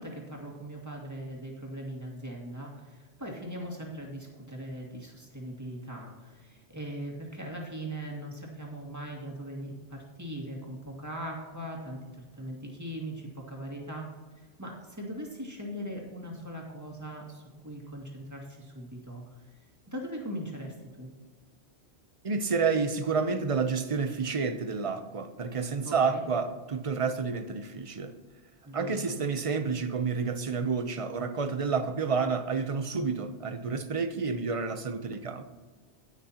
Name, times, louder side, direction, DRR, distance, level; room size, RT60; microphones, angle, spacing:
voice 1, 0.0-14.1 14.4-19.2 19.9-21.1 25.8-26.2 28.6-29.1, right 1 dB, 15° right, -1 dB, 2.1 m, -40 dB
voice 2, 22.2-28.1 28.7-35.4, right 5 dB, 35° right, 9 dB, 0.6 m, -29 dB
18.0 x 6.2 x 2.9 m, 1.4 s
omnidirectional pair, 1.2 m